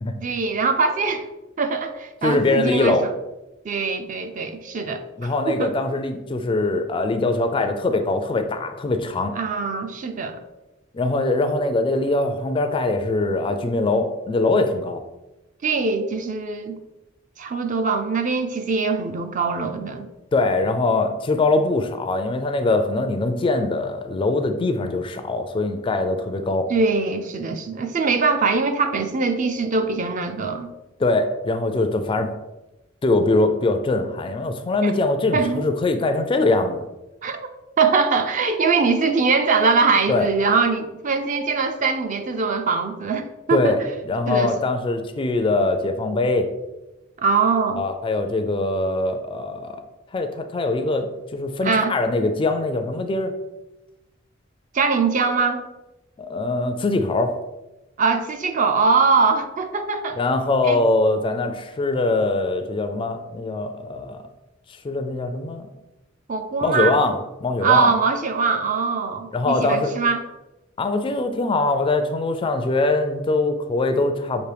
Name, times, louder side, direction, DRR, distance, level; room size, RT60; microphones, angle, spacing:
voice 1, 0.2-1.3 1.6-3.1 3.6-5.7 9.4-10.4 15.6-16.8 17.4-20.1 26.7-30.7 34.8-34.9 35.3-35.7 37.2-37.4 37.8-43.8 44.3-44.5 47.2-47.8 51.6-51.9 54.7-55.7 58.0-60.2 60.6-60.8 66.3-67.0 67.6-70.2, right 4 dB, 40° right, 7 dB, 0.4 m, -22 dB
voice 2, 2.2-3.1 5.2-9.3 10.9-15.0 20.3-26.7 31.0-32.3 33.0-36.8 40.1-40.3 43.5-46.5 47.8-49.8 50.1-53.3 56.2-57.3 60.2-64.2 64.8-65.7 66.6-67.9 69.3-69.9 70.8-74.4, left 2 dB, 25° left, 6 dB, 0.3 m, -22 dB
6.0 x 2.6 x 3.3 m, 0.99 s
head